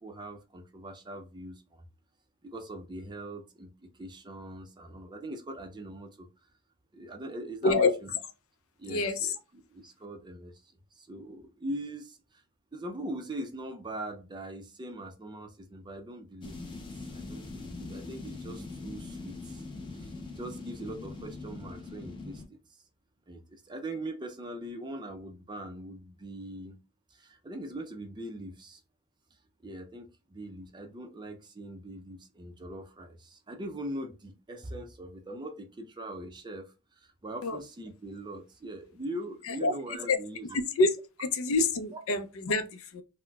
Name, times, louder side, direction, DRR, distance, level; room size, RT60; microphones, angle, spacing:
voice 1, 0.0-1.8 2.4-6.3 6.9-8.2 8.8-10.6 11.0-12.4 12.7-16.6 17.1-19.6 19.9-22.8 23.3-26.8 27.1-28.8 29.6-40.6 41.9-42.0, right 1 dB, 20° right, 0.4 m, -41 dB
voice 2, 8.9-9.3 37.4-37.6 39.5-39.7 40.1-40.2 40.8-40.9 41.2-43.0, left 3 dB, 65° left, 0.5 m, -26 dB
sound 1, 16.4-22.5, left 3 dB, 20° left, 0.7 m, -42 dB
4.0 x 2.1 x 2.2 m
head